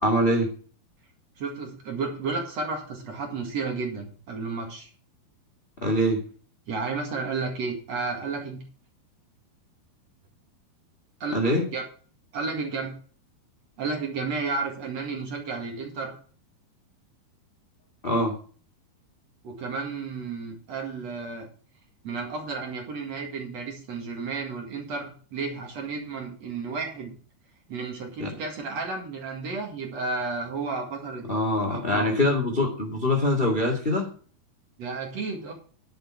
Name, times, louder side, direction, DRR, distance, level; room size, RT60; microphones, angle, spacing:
voice 1, 0.0-0.5 5.8-6.2 11.3-11.6 18.0-18.3 28.2-28.3 31.3-34.1, left 1 dB, 25° left, 2 dB, 1.2 m, -23 dB
voice 2, 1.4-4.9 6.7-8.6 11.2-11.3 11.7-11.8 12.3-12.9 13.8-16.2 19.4-21.5 22.0-27.1 27.7-32.1 34.8-35.5, right 4 dB, 50° right, 2 dB, 2.7 m, -32 dB
10.5 x 6.8 x 5.8 m, 0.43 s
omnidirectional pair, 4.6 m